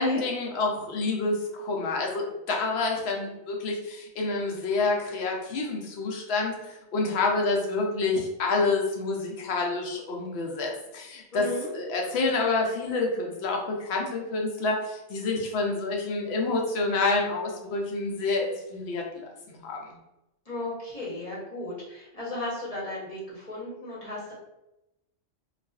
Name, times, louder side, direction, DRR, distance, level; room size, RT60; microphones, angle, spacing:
voice 1, 0.0-19.0 19.6-19.8, left 3 dB, 65° left, 0 dB, 0.7 m, -28 dB
voice 2, 11.3-11.7 20.5-24.3, left 1 dB, 35° left, -7 dB, 0.8 m, -35 dB
2.4 x 2.3 x 2.3 m, 0.91 s
omnidirectional pair, 1.3 m